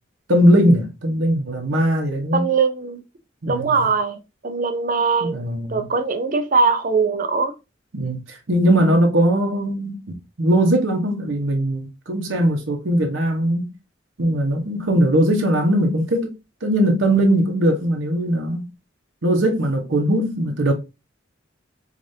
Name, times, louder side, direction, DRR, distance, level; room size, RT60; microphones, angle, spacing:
voice 1, 0.3-2.5 3.4-3.9 5.2-5.9 7.9-13.7 14.2-16.3 16.6-18.7 19.2-20.7, right 1 dB, 70° right, 0.9 m, -20 dB
voice 2, 2.3-3.0 3.5-7.5, right 4 dB, 45° right, 0.5 m, -21 dB
4.9 x 2.5 x 2.7 m
head